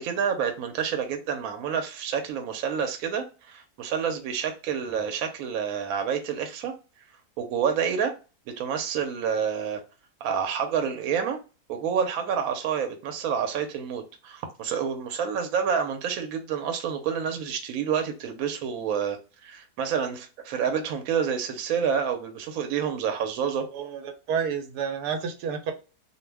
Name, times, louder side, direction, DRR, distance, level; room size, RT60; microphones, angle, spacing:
voice 1, 0.0-6.7 7.4-8.1 8.5-9.8 10.2-11.4 11.7-23.7, right 7 dB, 70° right, 1.0 m, -28 dB
voice 2, 23.7-25.7, right 7 dB, 90° right, 1.2 m, -30 dB
2.5 x 2.1 x 3.2 m
omnidirectional pair, 1.7 m